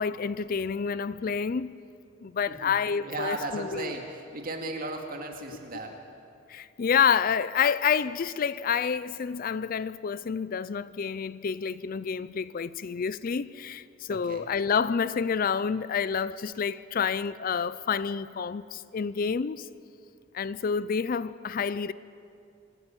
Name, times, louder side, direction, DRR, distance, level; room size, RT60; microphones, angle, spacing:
voice 1, 0.0-1.7 2.2-3.9 6.5-19.7 20.3-21.9, left 6 dB, 45° left, 0.4 m, -28 dB
voice 2, 3.0-5.9 12.4-12.5 14.1-14.5, right 2 dB, 45° right, 2.3 m, -36 dB
25.5 x 11.5 x 9.1 m
head